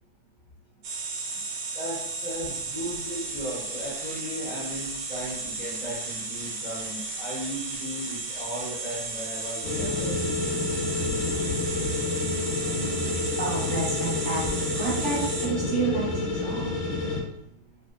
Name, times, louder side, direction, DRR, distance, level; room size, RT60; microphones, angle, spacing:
sound 1, 0.8-15.5, right 3 dB, 70° right, 0.9 m, -34 dB
voice 1, 1.7-10.1, equal, 30° right, -9 dB, 0.8 m, -36 dB
sound 2, 9.6-17.2, left 3 dB, 70° left, 1.5 m, -29 dB
voice 2, 13.0-16.1 16.4-16.7, right 3 dB, 25° left, -10 dB, 0.6 m, -30 dB
3.5 x 2.6 x 2.4 m, 0.77 s
omnidirectional pair, 2.3 m